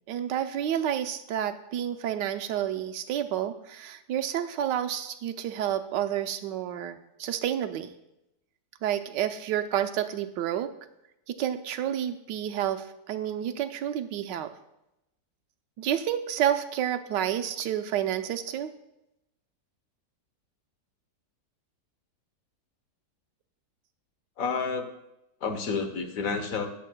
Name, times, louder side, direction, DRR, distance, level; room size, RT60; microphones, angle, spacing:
voice 1, 0.1-7.9 8.8-10.7 11.3-14.5 15.8-18.7, right 10 dB, 80° right, 8 dB, 1.3 m, -30 dB
voice 2, 24.4-24.9 25.4-26.7, left 5 dB, 55° left, 7 dB, 1.2 m, -30 dB
20.5 x 7.4 x 2.2 m, 0.88 s
omnidirectional pair, 1.9 m